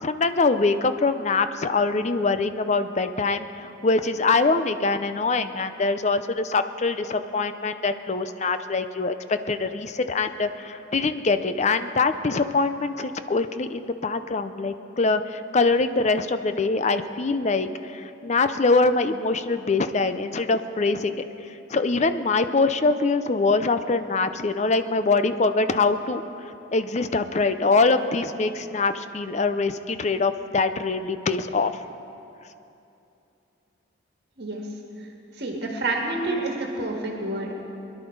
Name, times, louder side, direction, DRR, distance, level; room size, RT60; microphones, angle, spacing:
voice 1, 0.0-31.7, left 3 dB, 35° left, 10 dB, 0.5 m, -24 dB
voice 2, 35.4-37.5, right 2 dB, 60° right, 0 dB, 1.8 m, -28 dB
22.0 x 11.0 x 4.7 m, 2.8 s
head